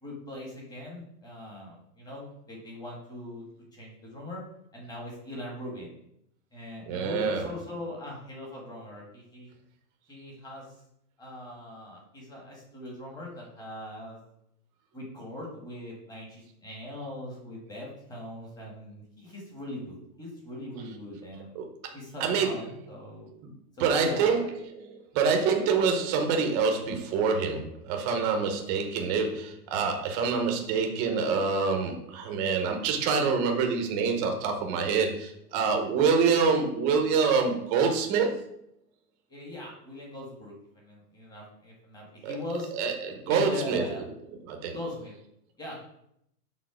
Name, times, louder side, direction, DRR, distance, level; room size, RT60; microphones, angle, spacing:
voice 1, 0.0-3.4 3.7-4.4 4.7-5.9 6.5-9.5 10.1-10.7 11.2-14.2 14.9-21.5 21.9-23.3 23.8-24.5 39.3-42.7 43.2-44.0 44.7-45.1 45.6-45.9, left 1 dB, 10° left, -2 dB, 1.4 m, -41 dB
voice 2, 6.9-7.5 21.5-21.7 22.2-22.5 23.8-38.4 42.2-42.4 42.8-43.8 44.5-44.8, right 5 dB, 25° right, 3 dB, 0.7 m, -26 dB
6.4 x 3.7 x 4.8 m, 0.75 s
supercardioid pair, 160°, 46 cm